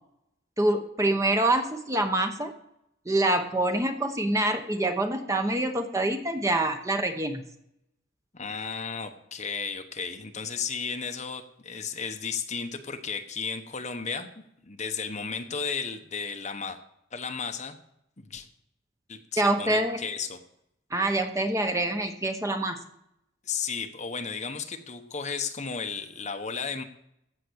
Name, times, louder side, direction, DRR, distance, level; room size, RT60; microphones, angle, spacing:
voice 1, 0.6-2.5 3.1-7.4 19.4-20.0 20.9-22.8, right 1 dB, 15° right, 6 dB, 0.9 m, -26 dB
voice 2, 8.3-14.3 14.6-16.8 17.1-17.7 18.2-18.5 19.1-20.4 23.4-26.8, left 5 dB, 35° left, 6 dB, 1.0 m, -34 dB
15.0 x 5.9 x 7.9 m, 0.78 s
head